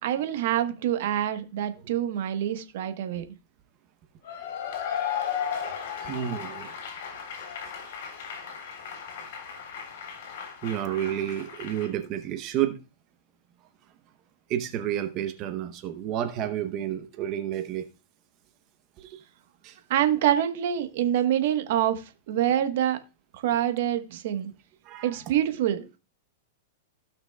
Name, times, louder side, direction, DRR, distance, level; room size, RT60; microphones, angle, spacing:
voice 1, 0.0-3.3 19.9-23.0 23.3-24.5 25.0-26.0, right 11 dB, 60° right, 1.1 m, -26 dB
Cheering / Applause / Crowd, 4.2-11.9, left 8 dB, 60° left, 3.5 m, -35 dB
voice 2, 6.0-6.8 10.6-12.8 14.5-17.8 19.0-19.2 19.6-19.8 24.8-25.1, right 11 dB, 35° right, 0.8 m, -30 dB
16.5 x 5.9 x 2.2 m
supercardioid pair, 150°, 0 cm